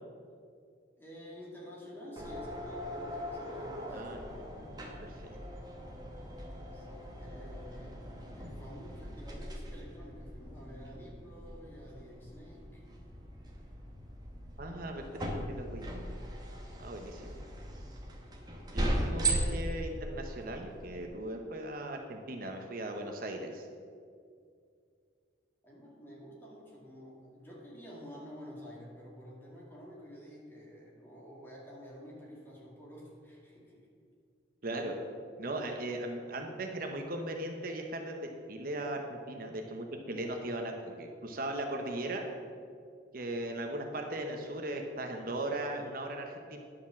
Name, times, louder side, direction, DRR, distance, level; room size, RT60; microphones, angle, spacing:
voice 1, 1.0-4.0 6.7-12.8 25.6-33.9, equal, 10° left, -4 dB, 2.2 m, -50 dB
sound 1, 2.2-21.1, right 1 dB, 20° right, 1.2 m, -39 dB
voice 2, 5.0-5.4 14.6-15.0 15.5-15.8 16.8-17.4 18.7-23.7 34.6-34.9 35.4-38.2 38.5-42.2 43.1-46.6, right 1 dB, 50° right, 3 dB, 0.8 m, -38 dB
10.5 x 5.0 x 7.0 m, 2.3 s
head